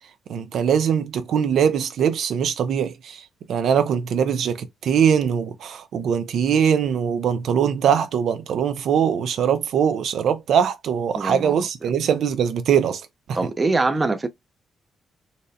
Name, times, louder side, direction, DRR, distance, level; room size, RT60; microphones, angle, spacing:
voice 1, 0.3-3.2 3.5-13.4, right 8 dB, 70° right, 0.5 m, -22 dB
voice 2, 11.1-11.6 13.3-14.3, right 3 dB, 20° right, 0.5 m, -23 dB
4.0 x 2.1 x 2.5 m
cardioid pair, 130°, 0 cm